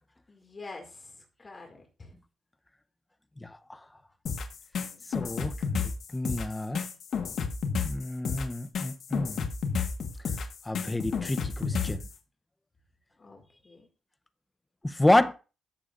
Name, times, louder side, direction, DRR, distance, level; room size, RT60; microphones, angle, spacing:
voice 1, 0.3-2.1 4.8-5.7 13.2-13.9, left 3 dB, 25° left, 2.1 m, -48 dB
sound 1, 4.3-12.1, left 5 dB, 60° left, 1.4 m, -31 dB
voice 2, 5.1-6.8 7.8-9.4 10.7-12.0 14.8-15.3, left 1 dB, 10° left, 0.7 m, -28 dB
14.5 x 6.8 x 2.5 m
cardioid pair, 140°, 0 cm